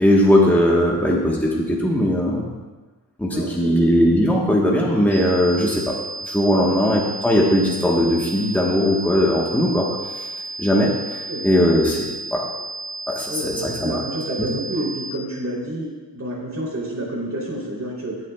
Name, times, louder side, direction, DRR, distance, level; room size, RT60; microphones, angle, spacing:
voice 1, 0.0-2.5 3.2-5.8 6.2-9.9 10.1-10.3 10.6-12.4 13.1-14.0 14.4-14.5, equal, 5° left, -3 dB, 1.2 m, -19 dB
voice 2, 3.3-3.9 5.6-5.7 6.5-6.8 11.3-11.4 13.3-18.2, right 1 dB, 40° right, -4 dB, 3.2 m, -29 dB
sound 1, 5.1-15.1, right 3 dB, 10° right, 2.1 m, -33 dB
18.5 x 7.2 x 2.3 m, 1.3 s
wide cardioid pair, 145°, 40 cm